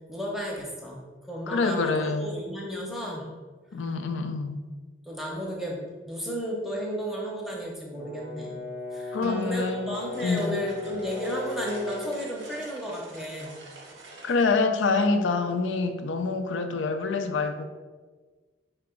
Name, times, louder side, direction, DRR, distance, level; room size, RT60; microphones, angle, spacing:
voice 1, 0.1-3.3 5.1-8.6 8.9-13.6, equal, ahead, -2 dB, 0.7 m, -33 dB
voice 2, 1.5-2.3 3.7-4.6 9.1-10.6 14.2-17.6, left 3 dB, 90° left, 7 dB, 0.4 m, -26 dB
Brass instrument, 7.9-12.2, left 3 dB, 50° left, 0.7 m, -36 dB
Acoustic guitar, 9.2-12.7, right 2 dB, 50° right, 0.4 m, -43 dB
sound 1, 9.6-14.5, right 2 dB, 85° right, 0.8 m, -47 dB
4.7 x 2.9 x 3.6 m, 1.4 s
head